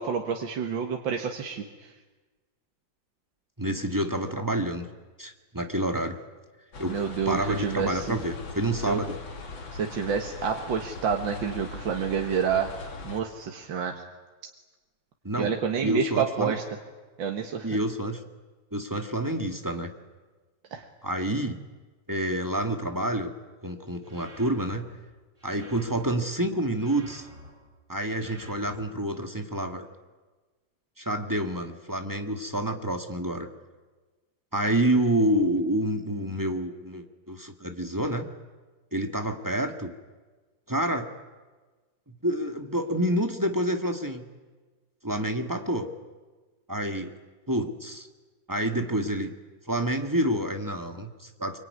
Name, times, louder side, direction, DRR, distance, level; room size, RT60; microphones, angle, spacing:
voice 1, 0.0-1.9 6.9-8.2 8.9-9.0 9.7-12.8 13.0-14.0 15.4-16.6 17.2-17.7 20.7-20.9, right 6 dB, 75° right, 3 dB, 2.2 m, -28 dB
voice 2, 3.6-4.9 5.2-6.2 6.8-7.0 7.2-9.2 15.2-15.5 15.8-16.6 17.6-18.2 18.7-19.9 21.0-21.6 22.1-23.3 23.6-24.9 25.4-27.3 27.9-29.9 31.0-33.5 34.5-38.3 38.9-39.9 40.7-41.1 42.1-44.2 45.0-45.9 46.7-47.1 47.5-48.1 48.5-49.3 49.7-51.6, right 1 dB, 10° right, 5 dB, 1.5 m, -28 dB
sound 1, 6.7-13.2, left 3 dB, 90° left, 3.2 m, -40 dB
sound 2, 24.0-24.8 25.4-26.2 26.7-27.5 28.1-28.9, equal, 40° right, 8.2 m, -49 dB
25.0 x 23.5 x 9.6 m, 1.3 s
omnidirectional pair, 2.1 m